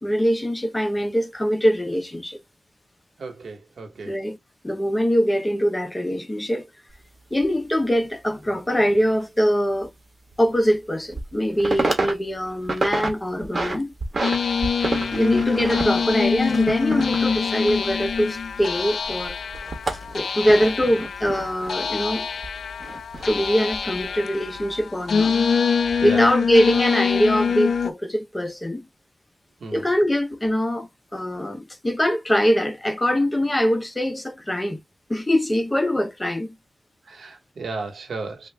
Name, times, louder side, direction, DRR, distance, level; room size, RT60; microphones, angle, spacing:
voice 1, 0.0-2.4 4.1-4.4 4.6-6.7 7.3-9.9 10.4-13.9 15.1-19.3 20.1-22.3 23.2-25.3 26.0-28.8 29.7-34.8 35.1-36.5, equal, 15° left, 0.7 m, -23 dB
voice 2, 3.2-4.1 14.9-15.4 16.0-16.1 20.4-20.7 26.0-26.3 29.6-29.8 37.0-38.5, right 3 dB, 80° right, 1.1 m, -35 dB
sound 1, 6.9-7.0 7.4-7.5 9.7-9.8 10.3-10.4 10.9-11.3 11.6-12.1 12.5-13.1 13.4-14.4 14.6-18.6 18.9-21.7 22.4-23.3 23.7-24.0, right 2 dB, 40° right, 1.3 m, -29 dB
sound 2, 14.2-27.9, left 6 dB, 80° left, 0.4 m, -24 dB
3.6 x 2.4 x 3.3 m
wide cardioid pair, 85°, 0 cm